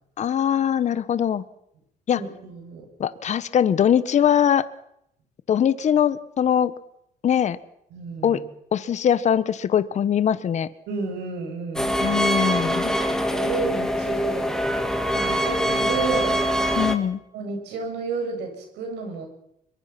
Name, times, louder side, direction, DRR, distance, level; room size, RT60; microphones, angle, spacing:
voice 1, 0.2-1.4 2.1-2.2 3.0-4.6 5.5-6.7 7.2-7.6 8.2-8.4 8.7-10.7 12.0-12.9 16.8-17.2, left 9 dB, 45° left, 15 dB, 1.1 m, -21 dB
voice 2, 2.1-2.9 7.9-8.4 10.9-12.2 12.6-14.9 15.1-16.4 17.3-19.3, right 4 dB, 85° right, 3 dB, 7.6 m, -31 dB
sound 1, 11.8-17.0, equal, 5° left, 2.4 m, -24 dB
24.5 x 23.0 x 6.0 m, 0.76 s
cardioid pair, 110°, 17 cm